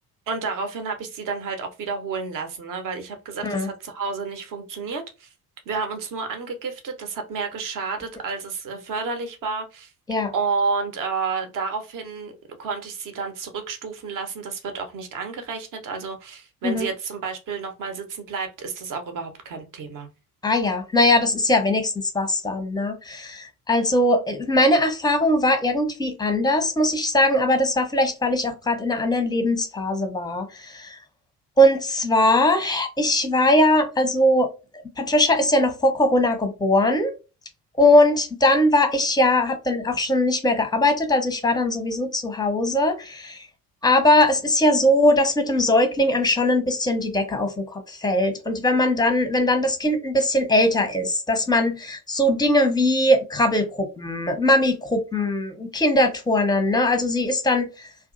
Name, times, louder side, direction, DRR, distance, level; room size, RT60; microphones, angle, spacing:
voice 1, 0.3-5.3 5.7-9.9 10.3-12.3 12.6-20.1, right 4 dB, 45° right, 0.8 m, -30 dB
voice 2, 20.4-31.0 31.6-34.5 35.0-37.1 37.8-43.5 43.8-57.9, left 1 dB, 10° left, 0.6 m, -20 dB
2.6 x 2.3 x 2.5 m
figure-of-eight pair, 50°, 46 cm